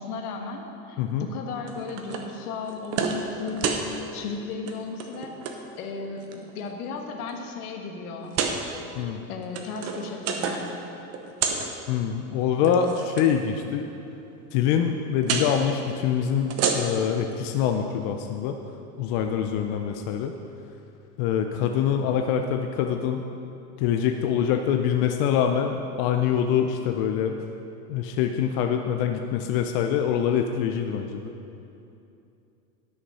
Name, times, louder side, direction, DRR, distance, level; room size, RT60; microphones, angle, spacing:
voice 1, 0.0-3.8 4.1-5.3 5.8-8.4 9.3-10.7, left 4 dB, 65° left, 3 dB, 1.5 m, -35 dB
voice 2, 1.0-1.3 8.9-9.2 11.9-13.9 14.5-18.6 19.0-20.3 21.2-23.2 23.8-27.4 27.9-31.3, left 8 dB, 40° left, 5 dB, 0.5 m, -25 dB
sound 1, 1.7-2.3 2.7-3.2 3.5-3.9 4.5-4.7 5.0-5.6 6.2-6.7 7.3-7.4 8.2-8.6 9.3-10.7 11.0-11.7 12.5-13.3 15.2-15.5 16.4-17.1, right 6 dB, 35° right, 0.9 m, -29 dB
11.5 x 6.6 x 5.5 m, 2.8 s
supercardioid pair, 135°, 47 cm